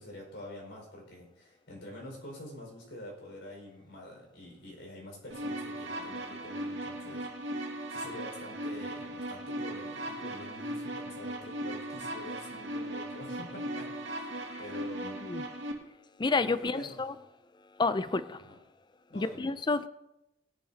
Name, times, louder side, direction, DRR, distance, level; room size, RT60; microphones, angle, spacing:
voice 1, 0.0-13.9 14.6-15.2 16.6-17.0 18.4-18.6 19.1-19.5, left 1 dB, 70° left, 5.1 m, -46 dB
sound 1, 5.3-15.7, right 1 dB, 85° right, 2.0 m, -38 dB
voice 2, 16.2-17.1 17.8-18.4 19.1-19.9, left 3 dB, 25° left, 0.5 m, -29 dB
20.0 x 11.5 x 2.8 m
head